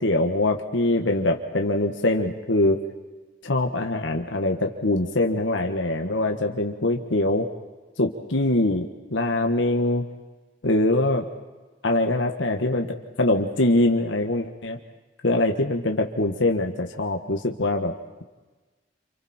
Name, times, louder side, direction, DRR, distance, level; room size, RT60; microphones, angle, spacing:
voice 1, 0.0-2.8 3.4-7.5 8.0-10.0 10.6-11.3 11.8-14.8 15.2-17.9, left 2 dB, 85° left, 3 dB, 1.7 m, -23 dB
29.5 x 27.5 x 4.5 m, 1.2 s
head